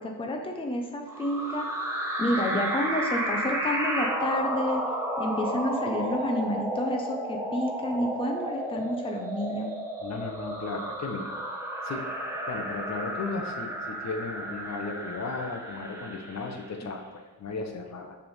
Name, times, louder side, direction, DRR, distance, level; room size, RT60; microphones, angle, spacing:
voice 1, 0.0-1.7 2.2-4.8 5.2-9.7 16.8-16.9, left 1 dB, 15° left, 2 dB, 0.8 m, -29 dB
sound 1, 1.1-16.8, right 1 dB, 5° right, 1.1 m, -32 dB
voice 2, 10.0-11.3 11.8-12.1 12.5-18.2, left 4 dB, 45° left, 4 dB, 0.9 m, -35 dB
6.6 x 3.6 x 5.5 m, 1.2 s
cardioid pair, 100°, 38 cm